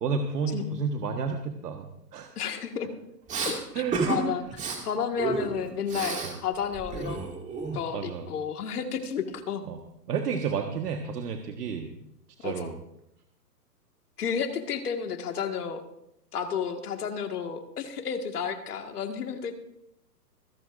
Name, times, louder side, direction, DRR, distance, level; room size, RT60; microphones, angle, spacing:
voice 1, 0.0-2.3 3.7-4.0 6.2-6.4 7.9-8.2 9.7-9.8 10.1-11.9 12.4-12.8, right 5 dB, 70° right, 4 dB, 1.6 m, -31 dB
voice 2, 2.4-2.9 3.4-3.6 4.1-7.3 7.7-9.6 12.4-12.7 14.2-15.8 16.3-19.5, left 7 dB, 65° left, 6 dB, 1.9 m, -32 dB
Respiratory sounds, 3.3-3.5 3.9-4.2 4.5-4.8 5.2-6.3 6.6-8.0, right 4 dB, 15° right, 2.2 m, -31 dB
26.5 x 11.0 x 2.6 m, 0.79 s
hypercardioid pair, 140°, 49 cm